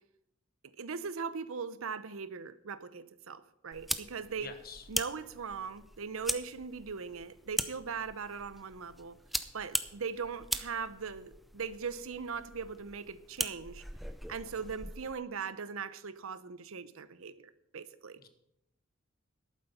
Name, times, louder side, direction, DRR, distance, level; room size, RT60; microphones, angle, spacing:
voice 1, 0.6-4.5 4.9-9.2 9.5-13.8 14.3-18.2, right 5 dB, 90° right, 14 dB, 0.7 m, -40 dB
sound 1, 3.7-15.1, equal, ahead, 0.5 m, -40 dB
voice 2, 4.4-4.8 18.2-18.3, left 5 dB, 45° left, 8 dB, 1.2 m, -46 dB
11.5 x 8.8 x 5.5 m, 0.81 s
head